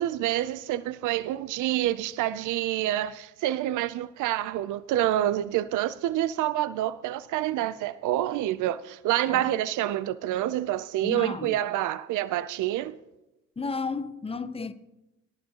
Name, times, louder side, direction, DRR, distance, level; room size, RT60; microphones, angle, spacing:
voice 1, 0.0-13.0, right 13 dB, 80° right, 0.5 m, -27 dB
voice 2, 11.0-11.6 13.6-14.7, left 4 dB, 20° left, 0.6 m, -33 dB
18.0 x 11.0 x 2.9 m
cardioid pair, 90°, 30 cm